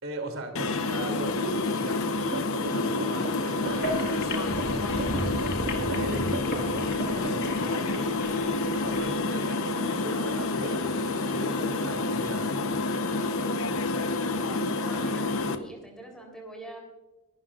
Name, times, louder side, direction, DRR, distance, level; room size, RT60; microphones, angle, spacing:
voice 1, 0.0-2.0 2.5-8.2 8.7-12.6, right 1 dB, 70° right, 4 dB, 3.1 m, -39 dB
sound 1, 0.6-15.6, left 3 dB, 75° left, 1.0 m, -28 dB
sound 2, 2.3-7.6, right 3 dB, 45° right, 0.5 m, -37 dB
sound 3, 3.7-9.1, left 1 dB, 50° left, 2.0 m, -35 dB
voice 2, 14.8-16.8, right 1 dB, 5° left, 0 dB, 3.7 m, -44 dB
23.5 x 13.0 x 2.5 m, 1.1 s
head